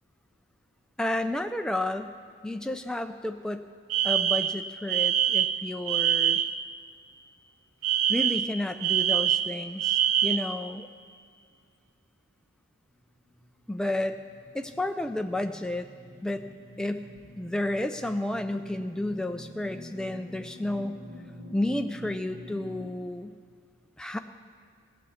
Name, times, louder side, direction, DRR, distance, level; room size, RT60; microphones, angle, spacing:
voice 1, 1.0-2.1 2.4-3.7 4.0-6.4 8.1-10.9 13.7-14.2 14.5-15.9 16.2-16.5 16.8-17.1 17.4-21.0 21.5-23.3 24.0-24.2, left 1 dB, 5° left, 6 dB, 0.4 m, -31 dB
Alarm, 3.9-6.6 7.8-10.6, right 10 dB, 75° right, 0.4 m, -25 dB
sound 1, 13.1-22.9, equal, 40° right, 1.8 m, -47 dB
17.0 x 8.1 x 7.1 m, 2.3 s
head